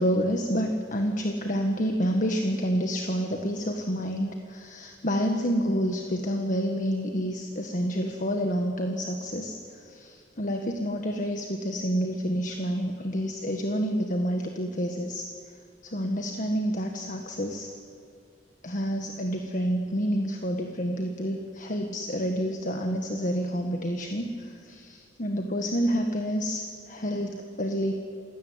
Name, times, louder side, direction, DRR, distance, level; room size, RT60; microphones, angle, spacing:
voice 1, 0.0-15.3 15.8-17.7 18.6-27.9, equal, 45° left, 4 dB, 1.6 m, -28 dB
28.0 x 16.5 x 9.6 m, 2.4 s
head